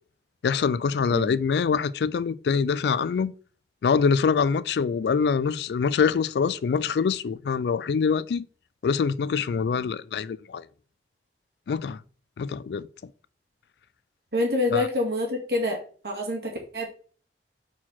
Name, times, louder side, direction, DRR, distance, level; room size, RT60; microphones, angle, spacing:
voice 1, 0.4-3.3 3.8-8.5 8.8-10.7 11.7-12.0 12.4-12.9 14.7-14.9, left 6 dB, 70° left, 0.3 m, -24 dB
voice 2, 14.3-15.8 16.0-16.9, left 2 dB, 60° right, 2.1 m, -26 dB
4.5 x 4.3 x 5.6 m
head